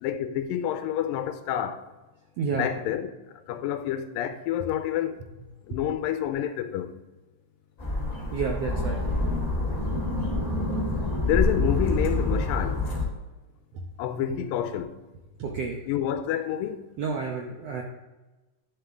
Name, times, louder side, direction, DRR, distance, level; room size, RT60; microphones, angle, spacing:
voice 1, 0.0-1.9 2.5-3.1 3.5-5.2 5.7-6.9 11.2-12.9 14.0-15.0 15.9-16.8, left 10 dB, 85° left, 2.3 m, -28 dB
sound 1, 7.8-13.0, left 2 dB, 20° left, 1.1 m, -27 dB
voice 2, 8.3-9.0 15.4-15.8 17.0-17.8, right 5 dB, 75° right, 1.5 m, -30 dB
11.5 x 6.9 x 3.6 m
omnidirectional pair, 4.0 m